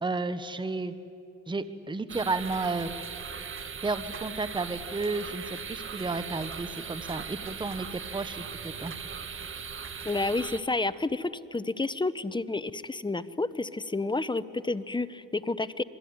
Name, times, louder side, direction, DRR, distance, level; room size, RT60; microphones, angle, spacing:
voice 1, 0.0-0.9 1.5-2.9 3.8-8.9, right 3 dB, 15° right, 11 dB, 1.2 m, -32 dB
sound 1, 2.1-10.6, right 6 dB, 40° right, 1.7 m, -39 dB
voice 2, 10.0-15.8, left 2 dB, 15° left, 15 dB, 0.9 m, -30 dB
27.0 x 21.5 x 9.7 m, 2.6 s
cardioid pair, 90°, 30 cm